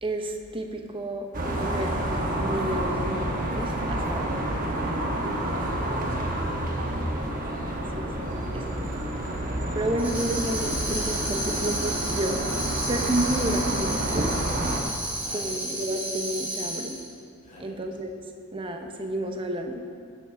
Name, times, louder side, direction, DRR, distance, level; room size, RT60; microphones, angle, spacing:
voice 1, 0.0-1.3 1.5-4.3 7.9-9.1 9.7-14.6 15.3-17.0 17.6-18.1 18.5-19.8, right 1 dB, 25° right, 4 dB, 0.8 m, -31 dB
sound 1, 1.3-14.8, right 1 dB, 40° right, 1.2 m, -29 dB
Tambourine, 10.0-17.1, right 1 dB, 10° right, 2.7 m, -32 dB
voice 2, 14.8-15.6 17.4-17.8, left 1 dB, 35° left, -4 dB, 2.6 m, -48 dB
15.5 x 7.6 x 3.5 m, 2.5 s
head